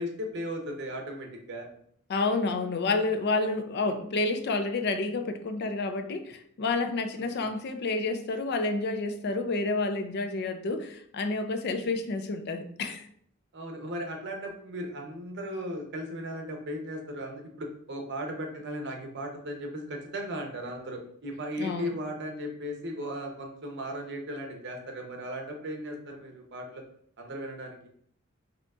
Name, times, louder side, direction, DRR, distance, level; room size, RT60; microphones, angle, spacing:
voice 1, 0.0-1.7 7.1-7.5 13.5-26.8 27.2-27.9, equal, 55° right, 2 dB, 0.8 m, -37 dB
voice 2, 2.1-13.0 21.6-21.9, left 3 dB, 55° left, 8 dB, 0.4 m, -29 dB
5.0 x 2.8 x 2.4 m, 0.64 s
head